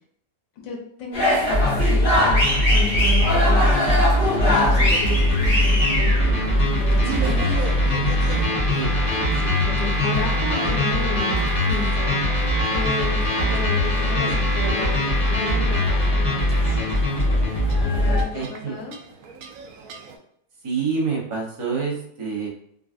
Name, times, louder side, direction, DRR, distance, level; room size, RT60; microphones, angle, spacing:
voice 1, 0.6-4.0 4.3-7.4 9.3-11.4 11.7-18.9, left 5 dB, 85° left, 0 dB, 1.4 m, -33 dB
sound 1, 1.1-18.2, equal, 40° left, 1.3 m, -26 dB
sound 2, 1.5-18.2, left 1 dB, 25° left, 0.9 m, -21 dB
sound 3, 4.5-20.2, right 5 dB, 75° right, 0.8 m, -39 dB
voice 2, 18.3-18.7 20.6-22.5, right 5 dB, 50° right, -4 dB, 0.3 m, -27 dB
3.7 x 2.4 x 2.4 m, 0.68 s
omnidirectional pair, 1.9 m